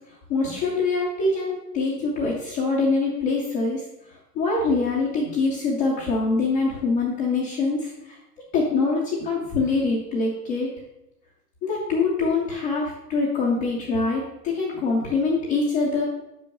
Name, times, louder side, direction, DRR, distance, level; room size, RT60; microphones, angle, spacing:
voice 1, 0.3-8.2 8.5-10.7 11.6-16.1, left 3 dB, 10° left, -5 dB, 0.3 m, -24 dB
5.7 x 5.3 x 6.5 m, 0.88 s
hypercardioid pair, 125°, 49 cm